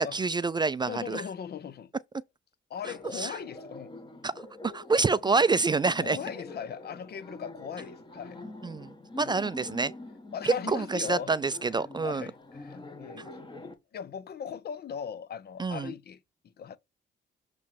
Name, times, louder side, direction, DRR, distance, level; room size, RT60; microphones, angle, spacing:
voice 1, 0.0-1.2 3.1-3.4 4.2-4.3 4.6-6.2 8.6-9.9 10.4-12.2 15.6-15.9, right 4 dB, 20° right, 0.3 m, -27 dB
voice 2, 0.9-1.9 2.7-4.0 5.8-8.4 9.1-9.3 10.3-11.4 12.0-16.2 16.6-16.8, left 7 dB, 55° left, 0.8 m, -39 dB
Laughter, 2.8-13.7, left 2 dB, 25° left, 1.5 m, -45 dB
7.2 x 3.2 x 5.8 m
cardioid pair, 90°, 20 cm